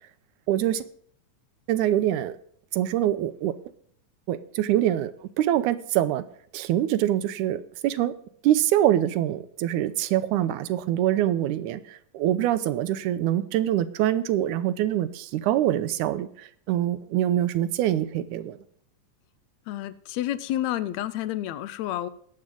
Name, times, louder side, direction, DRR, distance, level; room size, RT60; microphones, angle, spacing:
voice 1, 0.5-0.9 1.7-2.4 2.7-3.6 4.3-5.1 5.4-6.2 6.5-8.1 8.4-18.6, right 12 dB, 80° right, 2.0 m, -24 dB
voice 2, 19.7-22.1, left 13 dB, 80° left, 1.6 m, -30 dB
19.5 x 7.6 x 3.8 m
omnidirectional pair, 3.8 m